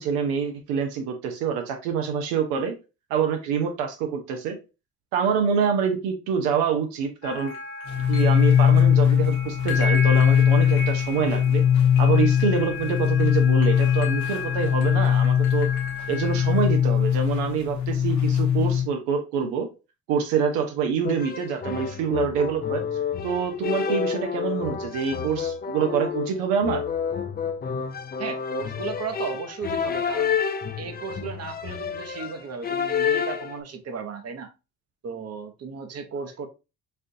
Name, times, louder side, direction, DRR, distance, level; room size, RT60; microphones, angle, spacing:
voice 1, 0.0-2.8 3.1-4.6 5.1-7.5 8.1-11.6 12.0-15.7 16.1-19.7 20.1-22.8 23.2-26.8, right 6 dB, 85° right, 0.7 m, -26 dB
sound 1, 7.2-17.5, left 3 dB, 85° left, 0.9 m, -35 dB
sound 2, 7.9-18.8, left 9 dB, 45° left, 1.0 m, -20 dB
sound 3, 21.0-33.6, left 7 dB, 25° left, 0.4 m, -29 dB
voice 2, 28.2-30.4 30.8-34.5 35.0-36.5, right 5 dB, 40° right, 0.8 m, -35 dB
4.3 x 2.5 x 2.6 m
supercardioid pair, 60°, 38 cm